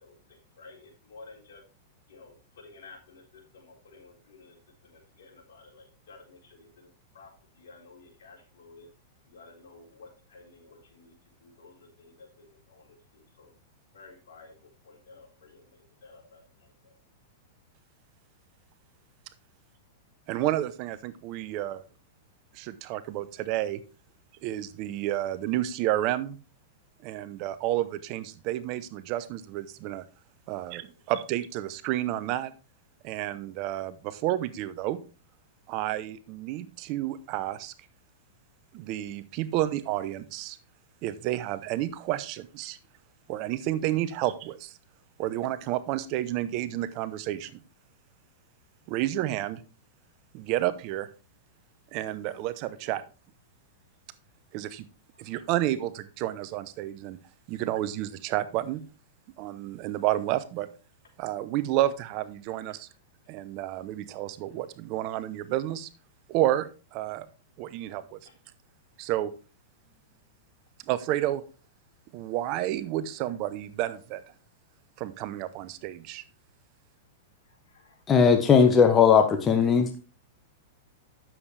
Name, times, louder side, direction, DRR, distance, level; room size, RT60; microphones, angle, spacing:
voice 1, 0.0-1.6 2.1-3.2 3.5-4.5 4.8-6.9 7.1-7.3 7.5-8.9 9.3-11.1 11.4-13.0 13.4-13.5 13.9-14.5 14.8-16.4 16.8-16.9 77.7-78.0, left 3 dB, 75° left, -1 dB, 4.0 m, -52 dB
voice 2, 20.3-21.8 22.5-23.8 24.4-26.4 27.0-30.0 30.5-32.5 33.0-35.0 35.7-37.7 38.7-40.6 41.0-42.8 43.3-44.7 45.2-47.5 48.9-49.6 50.3-51.1 51.9-53.0 54.5-54.8 55.2-57.2 57.5-58.8 59.4-60.7 61.2-62.9 63.3-65.9 66.3-67.3 67.6-68.2 69.0-69.3 70.9-71.4 72.1-74.2 75.0-76.2, right 14 dB, 45° right, 14 dB, 0.7 m, -30 dB
voice 3, 78.1-79.9, left 6 dB, 20° left, 6 dB, 1.1 m, -18 dB
9.6 x 7.3 x 3.3 m, 0.33 s
hypercardioid pair, 130°, 0 cm